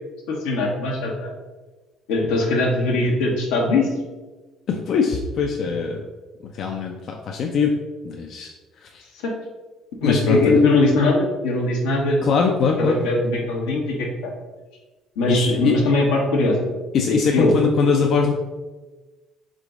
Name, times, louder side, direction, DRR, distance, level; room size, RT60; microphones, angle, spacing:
voice 1, 0.3-1.3 2.1-3.9 9.2-9.3 10.0-12.3 12.8-14.3 15.2-16.7 17.1-17.6, left 2 dB, 90° left, -1 dB, 1.0 m, -20 dB
voice 2, 4.7-6.0 6.5-7.8 8.0-8.5 8.8-9.0 10.0-10.6 12.2-13.0 15.3-15.8 16.9-18.3, left 5 dB, 60° left, 2 dB, 0.4 m, -21 dB
3.8 x 3.7 x 3.5 m, 1.2 s
supercardioid pair, 80°, 0 cm